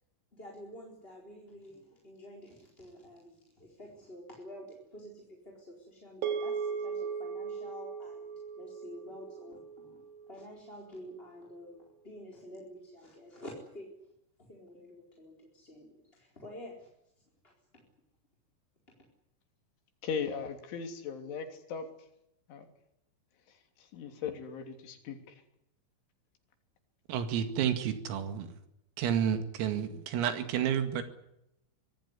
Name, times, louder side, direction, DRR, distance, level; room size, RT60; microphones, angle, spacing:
voice 1, 0.3-13.9 14.4-16.9 17.4-17.8 18.9-19.1, left 1 dB, 10° left, 3.9 m, -49 dB
sound 1, 6.2-10.7, right 6 dB, 55° right, 5.3 m, -38 dB
voice 2, 20.0-21.9 22.5-22.7 23.9-25.2, left 6 dB, 65° left, 5.5 m, -37 dB
voice 3, 27.1-28.6 29.0-31.0, right 9 dB, 85° right, 4.9 m, -30 dB
25.0 x 18.5 x 9.8 m
omnidirectional pair, 5.9 m